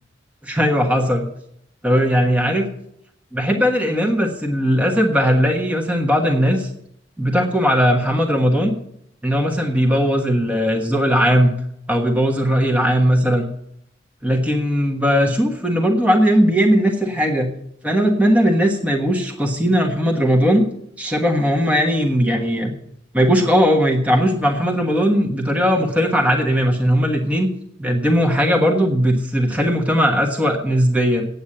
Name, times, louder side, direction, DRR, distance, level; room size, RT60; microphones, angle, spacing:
voice 1, 0.4-1.3 1.8-2.7 3.3-6.7 7.2-8.7 9.2-11.5 11.9-13.4 14.2-17.5 17.8-20.6 21.0-22.7 23.1-27.5 27.8-31.3, equal, 5° right, 2 dB, 1.3 m, -18 dB
8.8 x 8.4 x 8.5 m, 0.73 s
head